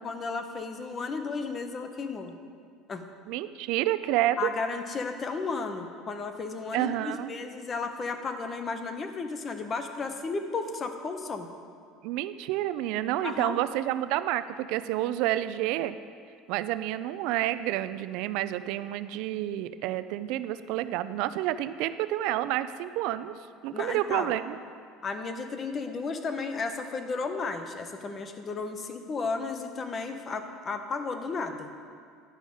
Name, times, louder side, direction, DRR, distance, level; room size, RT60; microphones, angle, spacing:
voice 1, 0.0-2.3 2.9-3.0 4.4-11.5 13.2-13.6 23.7-24.3 25.0-31.7, left 4 dB, 30° left, 7 dB, 0.8 m, -34 dB
voice 2, 3.3-4.5 6.7-7.3 12.0-16.0 16.5-23.3 23.6-24.6, right 14 dB, 70° right, 13 dB, 0.3 m, -29 dB
11.5 x 5.0 x 5.4 m, 2.2 s
supercardioid pair, 120°, 0 cm